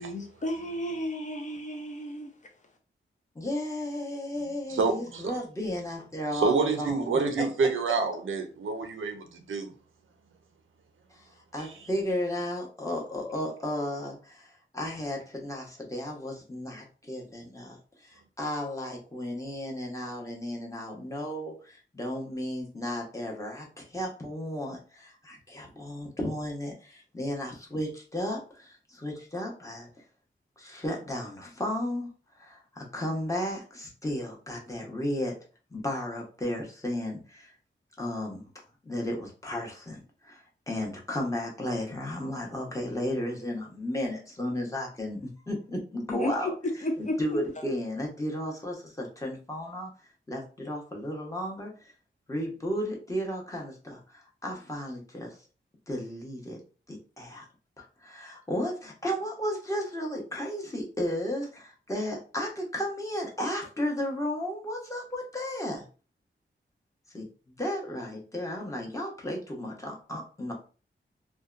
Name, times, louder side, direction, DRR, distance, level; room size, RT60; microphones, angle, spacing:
voice 1, 0.0-2.3 46.1-46.3 46.6-47.2, left 1 dB, 40° left, 0.5 m, -32 dB
voice 2, 3.3-7.4 11.1-11.2 11.5-29.9 30.6-32.1 32.4-35.3 35.7-37.5 38.0-38.5 38.8-46.5 47.0-49.9 50.3-51.7 52.3-55.4 55.9-56.6 56.9-57.5 57.8-65.8 67.1-67.3 67.6-70.5, left 1 dB, 15° left, 0.8 m, -34 dB
voice 3, 4.7-5.3 6.3-9.7, right 4 dB, 85° right, 0.5 m, -28 dB
2.7 x 2.1 x 2.4 m
wide cardioid pair, 90°, 20 cm